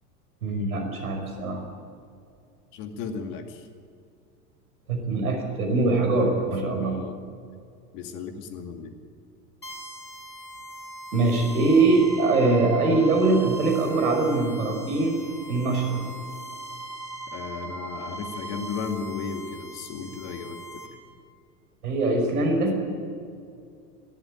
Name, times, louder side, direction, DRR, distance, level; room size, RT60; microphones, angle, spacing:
voice 1, 0.4-1.6 4.9-7.0 11.1-15.2 15.5-16.1 21.8-22.8, right 3 dB, 65° right, 4 dB, 5.3 m, -22 dB
voice 2, 2.7-3.7 6.3-7.2 7.9-9.0 17.3-20.8, left 5 dB, 45° left, 6 dB, 2.4 m, -35 dB
sound 1, 9.6-20.9, right 2 dB, 90° left, 3.7 m, -40 dB
21.5 x 14.0 x 9.0 m, 2.3 s
figure-of-eight pair, 90°, 47 cm